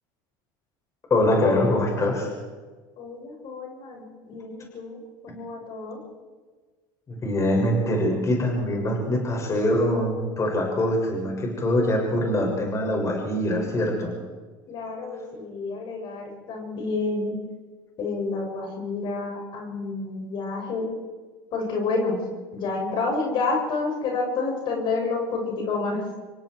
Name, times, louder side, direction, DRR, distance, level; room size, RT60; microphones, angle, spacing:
voice 1, 1.1-2.3 7.1-14.1, left 1 dB, 30° left, 0 dB, 6.6 m, -23 dB
voice 2, 3.0-6.0 14.7-17.3 18.0-20.9 21.5-22.2 22.5-26.0, left 3 dB, 55° left, 1 dB, 7.1 m, -29 dB
27.0 x 23.0 x 4.8 m, 1.4 s
supercardioid pair, 100°, 10 cm